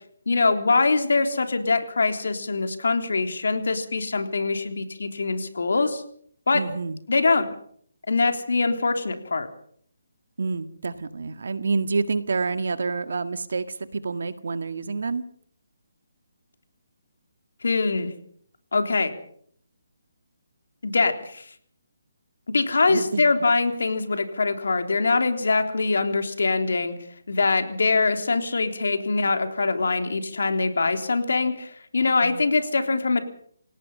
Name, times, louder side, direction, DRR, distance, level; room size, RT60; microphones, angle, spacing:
voice 1, 0.3-6.0 6.5-6.6 7.1-7.5 8.1-9.5 17.6-18.1 18.7-19.1 20.8-21.5 22.5-27.0 27.3-33.2, left 3 dB, 80° left, 7 dB, 3.5 m, -23 dB
voice 2, 6.5-7.0 10.4-15.3 22.9-23.2 32.2-32.4, right 4 dB, 70° right, 11 dB, 1.8 m, -28 dB
28.0 x 17.5 x 5.5 m, 0.62 s
hypercardioid pair, 165°, 0 cm